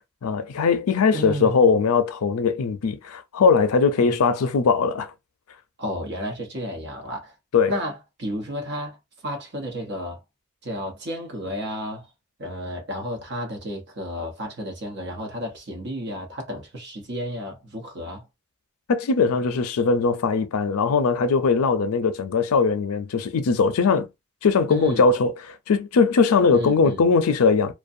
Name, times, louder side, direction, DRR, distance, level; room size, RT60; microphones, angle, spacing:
voice 1, 0.2-5.1 7.5-7.7 18.9-24.1 24.4-27.7, left 5 dB, 90° left, 0.5 m, -20 dB
voice 2, 1.1-1.7 4.0-4.2 5.8-7.3 7.7-9.0 9.2-10.2 10.6-12.1 12.4-18.3 24.7-25.1 26.5-27.0, equal, 50° right, 0.8 m, -32 dB
2.5 x 2.2 x 2.5 m
head